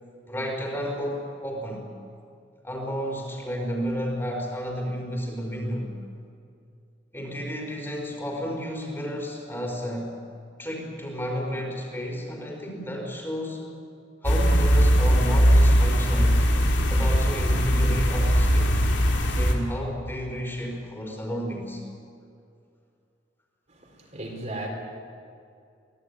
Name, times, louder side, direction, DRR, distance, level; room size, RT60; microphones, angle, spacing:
voice 1, 0.3-1.9 2.6-5.9 7.1-10.2 10.6-13.7 14.2-16.5 16.9-18.8 19.3-21.8, equal, 15° left, 0 dB, 4.5 m, -32 dB
sound 1, 14.2-19.5, equal, 75° left, 3.2 m, -20 dB
voice 2, 23.7-24.7, right 2 dB, 40° right, 1 dB, 4.2 m, -36 dB
24.0 x 18.0 x 9.7 m, 2.4 s
head